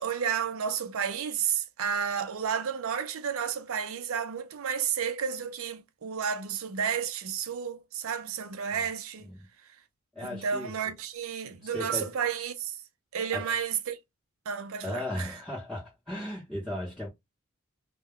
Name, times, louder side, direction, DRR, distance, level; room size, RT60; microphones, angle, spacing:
voice 1, 0.0-9.3 10.2-12.8 13.1-14.0 14.5-15.3, right 7 dB, 75° right, 0.5 m, -31 dB
voice 2, 10.1-10.9 11.5-12.2 13.3-13.5 14.8-17.1, left 1 dB, ahead, 0.8 m, -37 dB
2.2 x 2.1 x 3.5 m
head